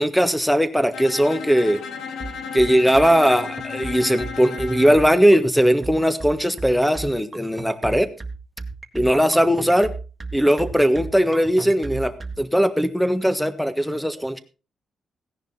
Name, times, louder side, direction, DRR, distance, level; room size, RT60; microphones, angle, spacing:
voice 1, 0.0-1.8 2.5-8.1 8.9-9.9 10.3-12.1 12.4-14.4, equal, ahead, 11 dB, 1.4 m, -19 dB
Bowed string instrument, 0.9-5.1, left 6 dB, 85° left, 2.0 m, -34 dB
sound 1, 2.2-12.4, right 3 dB, 25° right, 1.7 m, -34 dB
16.5 x 10.5 x 4.2 m, 0.33 s
cardioid pair, 125°, 0 cm